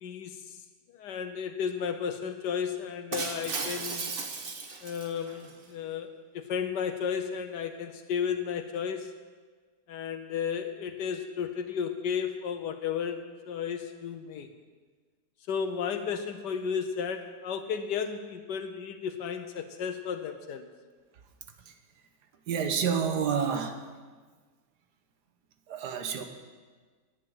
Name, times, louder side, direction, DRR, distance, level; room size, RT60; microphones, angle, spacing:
voice 1, 0.0-0.6 0.9-4.1 4.8-9.1 9.9-14.5 15.5-20.7, left 7 dB, 85° left, 7 dB, 1.4 m, -33 dB
Shatter, 3.1-5.5, right 4 dB, 40° right, 1.0 m, -36 dB
voice 2, 22.5-23.9 25.7-26.2, right 7 dB, 75° right, 7 dB, 1.6 m, -29 dB
10.0 x 8.9 x 8.8 m, 1.5 s
omnidirectional pair, 1.8 m